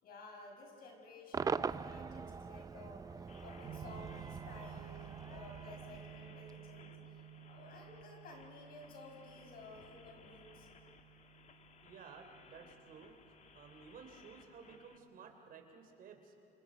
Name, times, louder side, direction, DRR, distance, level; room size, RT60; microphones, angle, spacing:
voice 1, 0.0-10.7, left 2 dB, 60° left, 2 dB, 5.8 m, -54 dB
Cheering / Crowd / Fireworks, 1.3-6.6, right 5 dB, 20° right, 0.4 m, -42 dB
sound 1, 3.3-15.0, left 6 dB, 45° left, 1.4 m, -61 dB
sound 2, 3.6-15.7, right 10 dB, 90° right, 4.8 m, -56 dB
voice 2, 11.8-13.1 13.5-16.3, right 6 dB, 60° right, 4 dB, 3.4 m, -55 dB
28.5 x 28.0 x 5.2 m, 2.8 s
cardioid pair, 110°, 17 cm